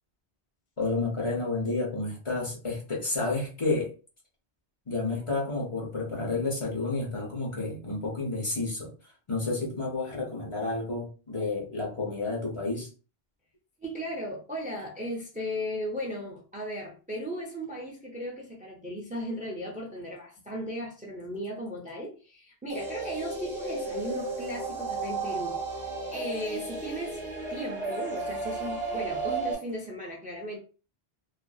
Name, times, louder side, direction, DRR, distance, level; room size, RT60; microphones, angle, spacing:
voice 1, 0.8-3.9 4.9-8.9 9.3-12.9, left 3 dB, 35° left, 0.7 m, -30 dB
voice 2, 13.8-27.2 27.5-30.6, equal, 15° right, 0.3 m, -36 dB
sound 1, 22.7-29.5, right 3 dB, 10° left, 1.0 m, -33 dB
2.6 x 2.4 x 2.3 m
omnidirectional pair, 1.1 m